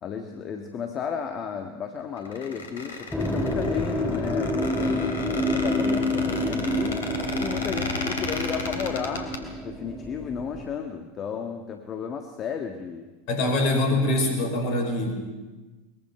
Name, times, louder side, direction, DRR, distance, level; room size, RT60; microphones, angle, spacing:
voice 1, 0.0-5.2 5.5-7.0 7.4-13.1, left 7 dB, 35° left, 5 dB, 1.5 m, -33 dB
Squeak, 2.2-9.4, left 3 dB, 70° left, 3.0 m, -34 dB
sound 1, 3.1-10.7, left 1 dB, 5° left, 2.9 m, -28 dB
voice 2, 13.3-15.1, left 1 dB, 50° left, 4 dB, 5.5 m, -24 dB
22.5 x 21.5 x 5.4 m, 1.2 s
figure-of-eight pair, 85°, 0 cm